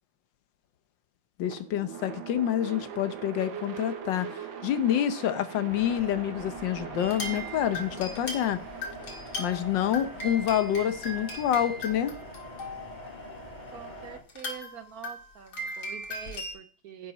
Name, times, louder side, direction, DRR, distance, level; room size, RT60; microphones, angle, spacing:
voice 1, 1.4-8.6 9.4-12.2, left 10 dB, 80° left, 11 dB, 1.5 m, -27 dB
sound 1, 1.4-13.5, right 8 dB, 85° right, 1.8 m, -43 dB
sound 2, 5.7-14.2, left 1 dB, 25° left, 1.8 m, -44 dB
sound 3, 7.0-13.0 13.7-13.8 14.3-16.5, left 1 dB, 60° left, 2.4 m, -38 dB
voice 2, 13.7-17.1, right 8 dB, 65° right, 10 dB, 1.0 m, -45 dB
10.5 x 7.6 x 4.1 m, 0.43 s
omnidirectional pair, 2.0 m